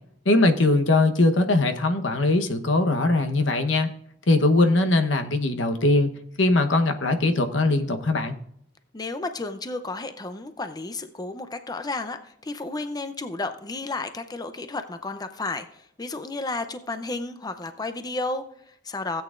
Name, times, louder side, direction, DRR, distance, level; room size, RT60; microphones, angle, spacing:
voice 1, 0.2-3.9 4.3-6.1 6.4-8.3, left 2 dB, 85° left, 7 dB, 1.1 m, -21 dB
voice 2, 8.9-19.2, left 3 dB, 20° left, 9 dB, 0.6 m, -32 dB
16.5 x 8.7 x 2.5 m, 0.69 s
head